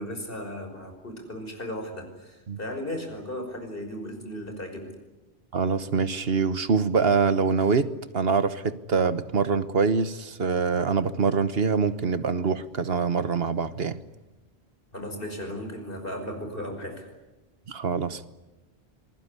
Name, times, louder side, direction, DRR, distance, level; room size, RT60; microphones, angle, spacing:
voice 1, 0.0-4.9 14.9-17.1, equal, 60° left, 6 dB, 5.9 m, -36 dB
voice 2, 5.5-14.0 17.7-18.3, right 5 dB, 70° right, 13 dB, 1.4 m, -24 dB
26.5 x 21.0 x 9.8 m, 1.1 s
omnidirectional pair, 1.1 m